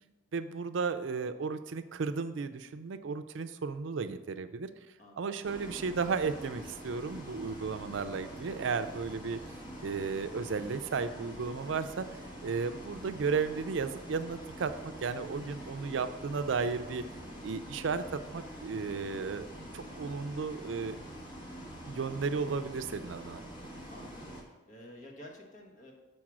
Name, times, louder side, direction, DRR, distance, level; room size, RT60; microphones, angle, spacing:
voice 1, 0.3-4.7 5.2-9.4 9.8-12.1 12.4-14.7 15.0-17.0 17.4-18.0 18.3-19.5 19.7-21.0 21.9-23.4, right 5 dB, 75° right, 10 dB, 0.4 m, -34 dB
voice 2, 5.0-5.5 23.9-25.9, left 1 dB, 40° left, 0 dB, 1.4 m, -52 dB
Bus, 5.4-24.4, equal, 25° left, 1.3 m, -45 dB
6.2 x 4.6 x 6.0 m, 1.1 s
head